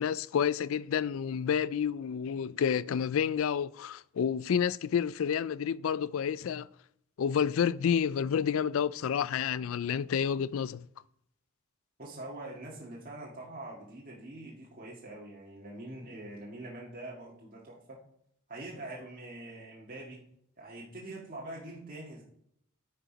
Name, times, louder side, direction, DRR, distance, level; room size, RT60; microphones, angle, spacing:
voice 1, 0.0-6.7 7.2-10.8, left 7 dB, 70° left, 0.3 m, -29 dB
voice 2, 12.0-18.0 18.5-20.2 20.6-22.2, right 1 dB, 40° right, 1.9 m, -44 dB
9.8 x 5.4 x 5.1 m
head